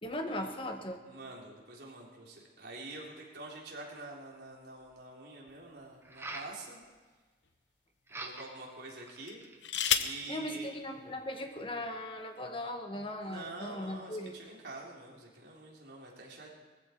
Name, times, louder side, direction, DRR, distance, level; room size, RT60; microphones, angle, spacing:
voice 1, 0.0-1.0 10.3-14.4, left 1 dB, 30° left, 4 dB, 1.4 m, -38 dB
voice 2, 1.1-6.8 8.2-9.4 10.0-10.7 13.2-16.5, right 2 dB, 65° right, -3 dB, 3.7 m, -46 dB
sound 1, 4.4-4.5 6.0-6.6 8.1-8.6 9.1-9.6, right 2 dB, 15° right, 1.0 m, -43 dB
sound 2, 5.5-6.7 7.4-7.6 9.2-10.3 11.4-11.5 11.8-12.2, left 9 dB, 80° left, 0.9 m, -33 dB
19.5 x 15.0 x 4.6 m, 1.4 s
head